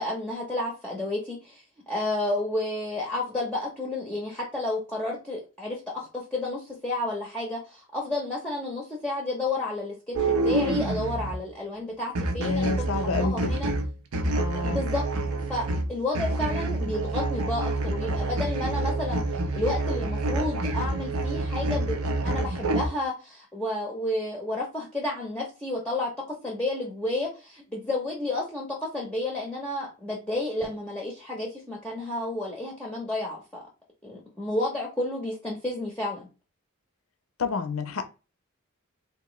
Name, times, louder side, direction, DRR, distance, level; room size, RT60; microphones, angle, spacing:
voice 1, 0.0-13.7 14.6-15.0 15.5-19.2 19.5-21.9 22.2-26.1 26.4-33.4 34.0-36.3, left 2 dB, 5° left, 0.6 m, -31 dB
sound 1, 10.1-11.4 12.1-22.8, right 2 dB, 80° right, 0.7 m, -27 dB
voice 2, 12.4-13.4 14.4-14.8 37.4-38.1, left 4 dB, 70° left, 0.5 m, -28 dB
3.6 x 2.5 x 3.0 m
head